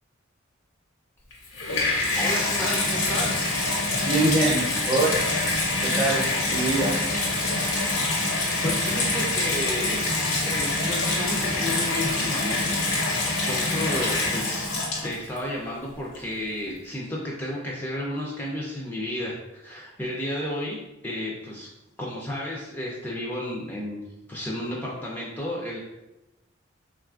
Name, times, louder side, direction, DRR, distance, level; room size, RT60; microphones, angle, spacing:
Water tap faucet / Bathtub (filling or washing), 1.3-15.4 16.1-16.2, left 2 dB, 90° left, 0.9 m, -25 dB
voice 1, 2.2-3.5 8.6-10.1 10.3-14.7 15.0-20.8 21.0-21.7 22.0-24.0 24.3-25.8, left 1 dB, 10° left, -4 dB, 0.4 m, -32 dB
voice 2, 4.0-5.2 5.8-7.0, right 2 dB, 30° right, -2 dB, 0.6 m, -24 dB
3.6 x 2.4 x 2.3 m, 0.96 s
head